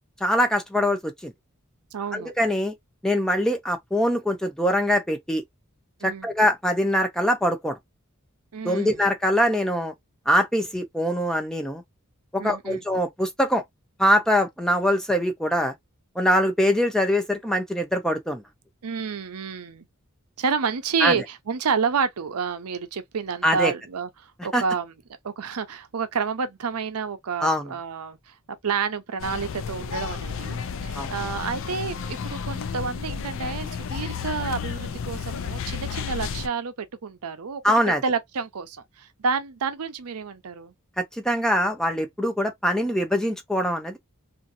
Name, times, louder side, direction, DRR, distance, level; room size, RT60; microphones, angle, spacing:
voice 1, 0.2-1.3 2.1-2.7 3.0-5.4 6.0-7.7 8.6-9.9 10.3-11.8 12.3-13.6 14.0-15.7 16.2-18.4 21.0-21.2 23.4-23.7 24.5-24.6 27.4-27.7 31.0-31.1 37.6-38.0 41.0-44.0, equal, 5° left, 0.5 m, -23 dB
voice 2, 1.9-2.3 6.0-6.3 8.5-9.0 12.4-12.8 18.8-19.9 20.4-24.9 25.2-28.3 28.6-37.6 37.9-40.7, right 5 dB, 90° right, 0.6 m, -29 dB
sound 1, 29.2-36.5, left 6 dB, 60° left, 0.4 m, -32 dB
2.7 x 2.6 x 2.5 m
head